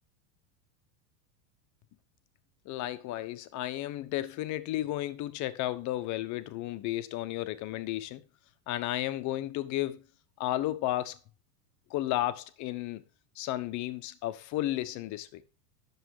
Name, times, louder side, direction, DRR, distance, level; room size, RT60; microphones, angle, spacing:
voice 1, 2.7-8.2 8.7-10.0 10.4-11.2 11.9-13.0 13.4-15.5, left 14 dB, 35° left, 1.1 m, -33 dB
10.5 x 6.9 x 4.8 m
supercardioid pair, 140°, 47 cm